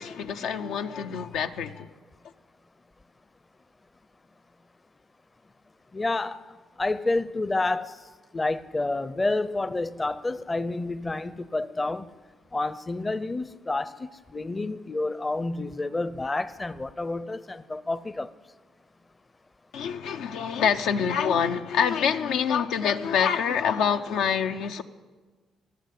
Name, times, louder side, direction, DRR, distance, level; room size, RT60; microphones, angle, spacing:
voice 1, 0.0-1.9 19.7-24.8, left 7 dB, 85° left, 0.6 m, -26 dB
voice 2, 5.9-6.4 6.8-7.9 8.3-12.1 12.5-18.3, left 2 dB, 20° left, 0.6 m, -29 dB
19.0 x 7.7 x 8.4 m
cardioid pair, 90°, 0 cm